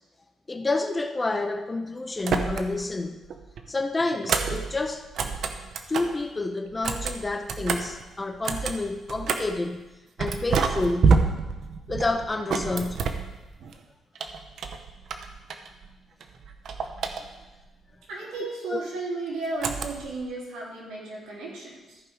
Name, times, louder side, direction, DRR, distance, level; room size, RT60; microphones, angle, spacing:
voice 1, 0.5-3.2 3.7-5.1 5.9-9.8 10.2-11.1 11.9-13.0 18.7-18.8 20.6-20.7, left 2 dB, 25° left, 7 dB, 0.8 m, -29 dB
sound 1, 2.2-2.9 3.2-6.2 6.7-9.6 10.2-13.8 14.1-15.9 16.2-17.6 19.6-20.2, right 5 dB, 65° right, 0.9 m, -28 dB
voice 2, 18.1-22.0, right 3 dB, 90° right, -5 dB, 3.5 m, -34 dB
14.0 x 5.3 x 4.8 m, 1.1 s
cardioid pair, 90°, 0 cm